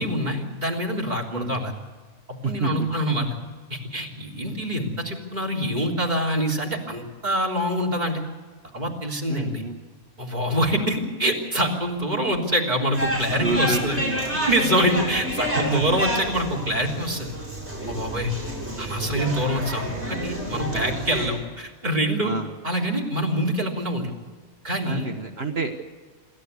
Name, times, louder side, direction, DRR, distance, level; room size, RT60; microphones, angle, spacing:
voice 1, 0.0-1.7 2.4-3.3 3.7-8.2 8.7-9.6 10.2-14.0 14.5-17.3 17.8-18.3 18.8-22.3 22.6-24.1 24.6-25.1, equal, 30° right, 2 dB, 3.6 m, -25 dB
voice 2, 2.4-2.9 9.3-9.8 13.4-14.5 15.5-16.0 20.5-21.0 22.2-22.5 24.8-25.8, right 3 dB, 50° right, 4 dB, 1.5 m, -29 dB
sound 1, 12.9-21.3, equal, 10° right, 6.9 m, -29 dB
27.5 x 13.0 x 8.3 m, 1.5 s
omnidirectional pair, 1.5 m